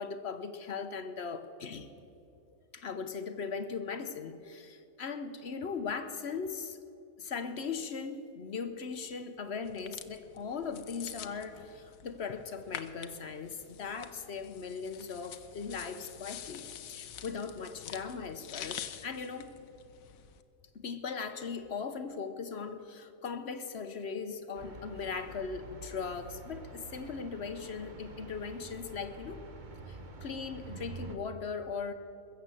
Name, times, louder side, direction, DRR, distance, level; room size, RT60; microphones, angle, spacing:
voice 1, 0.0-1.9 2.7-6.8 7.2-19.5 20.7-29.4 29.9-31.9, left 5 dB, 55° left, 9 dB, 1.0 m, -39 dB
sound 1, 9.6-20.4, left 9 dB, 75° left, 1.1 m, -47 dB
sound 2, 24.5-31.2, right 3 dB, 35° right, 1.0 m, -47 dB
21.5 x 7.5 x 7.6 m, 2.7 s
omnidirectional pair, 1.5 m